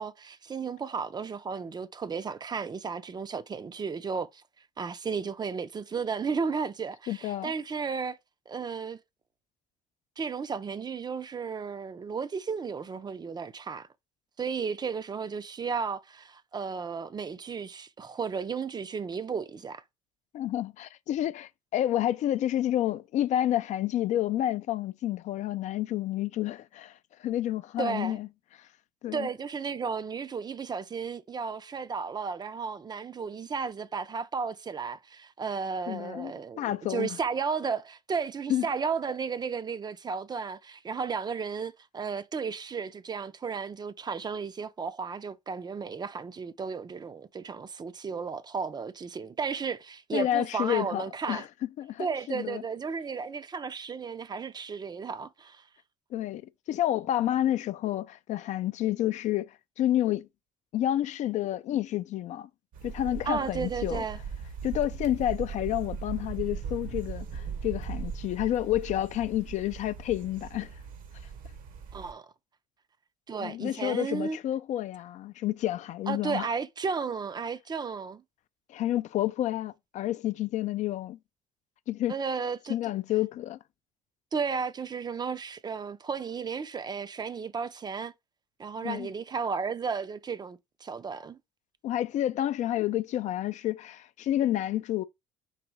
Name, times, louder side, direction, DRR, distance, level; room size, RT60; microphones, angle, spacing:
voice 1, 0.0-4.4 4.8-8.2 8.5-9.0 10.2-13.9 14.4-19.8 27.8-28.2 29.1-51.4 52.0-55.6 63.3-64.2 71.9-72.3 73.3-74.4 76.1-78.2 82.1-82.8 84.3-88.1 88.6-91.4, right 5 dB, 25° right, 0.5 m, -34 dB
voice 2, 7.1-7.5 20.3-28.3 28.6-28.7 29.0-29.3 35.9-37.2 38.5-38.7 50.1-51.5 51.8-52.6 56.1-56.4 56.7-60.3 60.7-62.5 62.8-64.0 64.6-70.7 73.4-76.5 78.7-81.2 81.9-82.2 82.7-83.6 88.8-89.1 91.8-95.0, left 13 dB, 50° left, 0.4 m, -29 dB
sound 1, 62.7-72.1, right 6 dB, 60° right, 1.0 m, -39 dB
4.0 x 2.7 x 4.7 m
hypercardioid pair, 60°, 16 cm